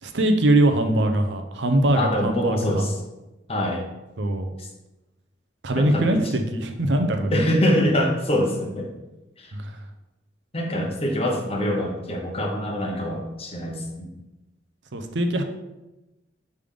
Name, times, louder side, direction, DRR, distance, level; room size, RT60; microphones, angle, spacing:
voice 1, 0.0-2.9 4.2-4.5 5.6-7.5 9.5-9.8 14.9-15.4, right 1 dB, 75° right, 6 dB, 0.6 m, -22 dB
voice 2, 1.9-2.9 3.5-3.9 5.8-6.2 7.3-8.9 9.4-9.5 10.5-14.2, equal, 30° left, 1 dB, 0.9 m, -24 dB
5.3 x 3.4 x 5.1 m, 1.0 s
head